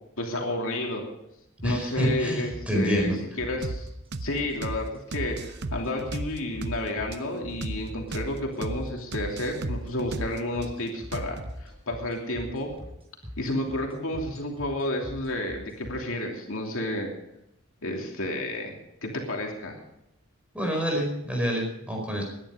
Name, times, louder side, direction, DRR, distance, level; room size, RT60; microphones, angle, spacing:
voice 1, 0.2-1.0 1.6-3.1 3.4-3.9 4.2-12.7 13.4-17.1 17.8-18.7 19.0-19.8, left 1 dB, 70° left, 0 dB, 2.9 m, -31 dB
voice 2, 1.6-3.2 20.5-22.2, equal, 5° right, 0 dB, 4.8 m, -27 dB
sound 1, 1.6-15.9, equal, 25° right, 4.8 m, -42 dB
sound 2, 3.6-3.8 4.1-4.3 4.6-4.8 5.1-6.8 7.1-7.2 7.6-7.8 8.1-8.3 8.6-8.8 9.1-10.7 11.1-11.5, right 2 dB, 50° right, 0.8 m, -34 dB
19.0 x 11.0 x 5.1 m, 0.84 s
head